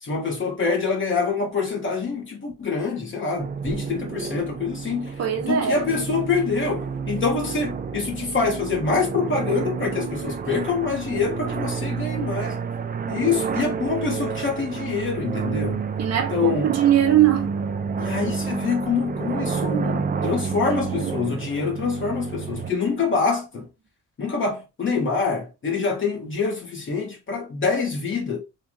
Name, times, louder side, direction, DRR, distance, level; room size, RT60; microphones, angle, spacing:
voice 1, 0.0-5.1 5.5-12.6 13.1-15.8 16.3-16.7 18.0-23.7 24.2-28.4, left 4 dB, 40° left, 1.5 m, -25 dB
sound 1, 3.4-22.7, right 5 dB, 30° right, 0.5 m, -30 dB
voice 2, 5.2-5.8 16.0-17.5 20.7-21.1, right 11 dB, 55° right, 1.0 m, -21 dB
3.6 x 2.4 x 3.1 m
cardioid pair, 90°, 30 cm